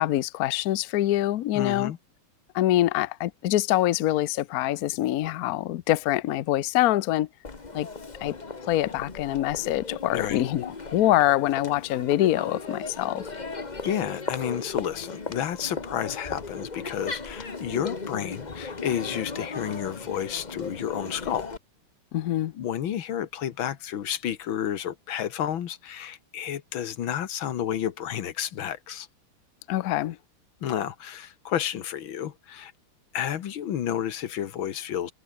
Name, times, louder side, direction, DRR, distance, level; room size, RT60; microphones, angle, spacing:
voice 1, 0.0-1.9 2.5-7.3 7.7-7.9 8.2-8.4 8.6-13.2 22.1-22.5 29.7-30.2, left 14 dB, 85° left, 0.8 m, -25 dB
voice 2, 1.6-2.0 10.1-10.4 13.8-21.5 22.5-29.1 30.6-32.7 33.1-35.1, left 10 dB, 65° left, 2.0 m, -31 dB
Crowd, 7.4-21.6, left 4 dB, 25° left, 1.3 m, -37 dB
omnidirectional pair, 2.4 m